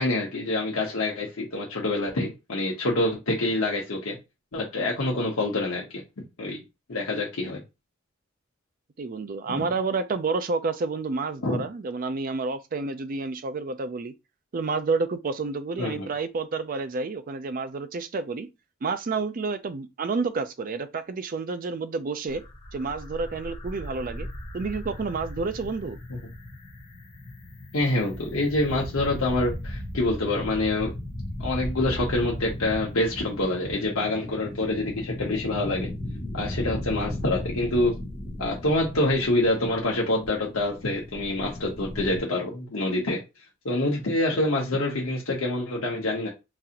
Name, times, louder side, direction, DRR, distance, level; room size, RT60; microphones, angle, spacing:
voice 1, 0.0-4.2 4.5-5.9 6.4-6.6 6.9-7.6 9.6-9.7 11.4-11.6 15.8-16.1 26.1-26.2 27.7-30.9 31.4-35.9 36.3-37.9 38.4-43.2 43.6-46.3, left 2 dB, 80° left, 0.9 m, -26 dB
voice 2, 9.0-14.1 14.5-18.5 18.8-22.4 22.7-24.3 24.5-26.0, right 4 dB, 40° right, 0.4 m, -29 dB
sound 1, 22.3-42.2, left 1 dB, 25° left, 0.7 m, -36 dB
3.9 x 2.5 x 2.8 m
head